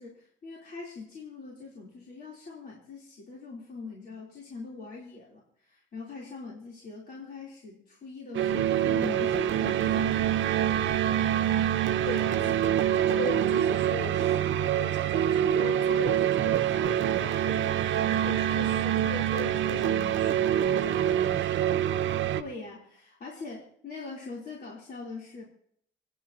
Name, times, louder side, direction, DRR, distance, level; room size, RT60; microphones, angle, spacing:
voice 1, 0.0-10.4 12.3-12.6 22.3-25.4, left 4 dB, 55° left, 3.8 m, -42 dB
sound 1, 8.3-22.4, right 10 dB, 70° right, 0.8 m, -25 dB
voice 2, 12.0-12.5 13.1-21.8, left 3 dB, 70° left, 6.8 m, -39 dB
29.0 x 10.0 x 3.0 m
cardioid pair, 90°, 20 cm